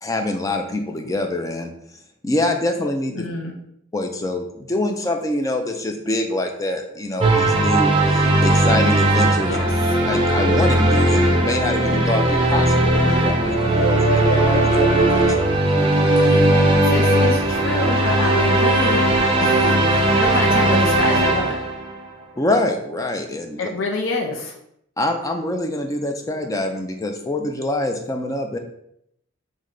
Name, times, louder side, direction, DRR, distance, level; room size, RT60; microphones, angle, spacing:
voice 1, 0.0-1.7 2.2-3.3 3.9-9.5 10.1-15.5 22.4-23.6 25.0-28.6, left 1 dB, 15° left, 4 dB, 0.4 m, -25 dB
voice 2, 3.1-3.5 9.4-10.0 16.2-19.0 19.4-21.5 23.6-24.6, left 2 dB, 70° left, 1 dB, 0.6 m, -27 dB
sound 1, 7.2-21.9, right 1 dB, 25° right, 0.6 m, -18 dB
3.2 x 3.1 x 3.7 m, 0.74 s
head